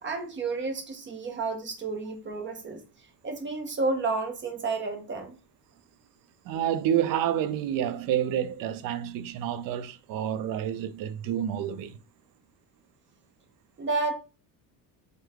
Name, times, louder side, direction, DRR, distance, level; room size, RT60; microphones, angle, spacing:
voice 1, 0.0-2.8 3.2-5.4 13.8-14.1, right 3 dB, 30° right, 0.7 m, -31 dB
voice 2, 6.5-12.0, right 10 dB, 60° right, 0.4 m, -29 dB
3.1 x 2.2 x 3.5 m
cardioid pair, 140°, 40 cm